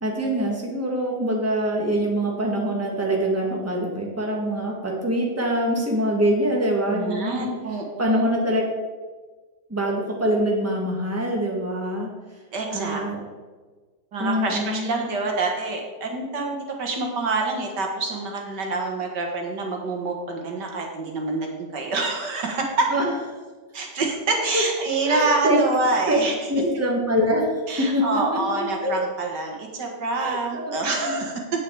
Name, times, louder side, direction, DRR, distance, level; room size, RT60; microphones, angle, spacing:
voice 1, 0.0-7.5 8.0-8.6 9.7-12.1 12.7-13.2 14.2-15.0 22.9-23.0 24.5-24.6 25.1-25.6 26.1-26.2 26.5-27.6 27.9-28.0 28.3-28.4 28.8-28.9 30.2-31.2, equal, 10° right, -1 dB, 1.9 m, -24 dB
voice 2, 6.9-8.3 12.5-13.0 14.1-22.9 23.7-26.3 27.7-31.4, right 3 dB, 80° right, 1 dB, 2.3 m, -27 dB
9.5 x 8.8 x 4.9 m, 1.4 s
omnidirectional pair, 1.8 m